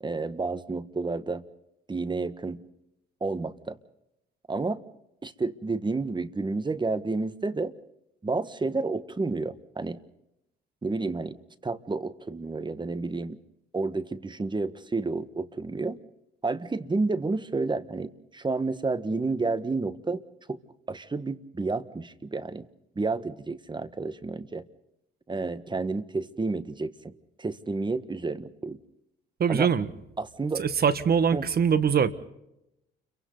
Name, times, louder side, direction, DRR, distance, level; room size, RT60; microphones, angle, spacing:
voice 1, 0.0-1.4 1.9-2.6 3.2-3.8 4.5-4.8 5.2-7.7 8.2-10.0 10.8-11.4 11.6-13.4 13.7-16.0 16.4-20.2 20.5-20.6 20.9-22.7 22.9-24.6 25.3-27.1 27.4-28.8 29.5-29.7 30.2-30.6 31.3-31.5, right 3 dB, 20° right, 13 dB, 1.5 m, -30 dB
voice 2, 29.4-29.9 30.6-32.1, right 7 dB, 45° right, 13 dB, 1.6 m, -23 dB
30.0 x 23.5 x 4.0 m, 0.86 s
supercardioid pair, 75°, 21 cm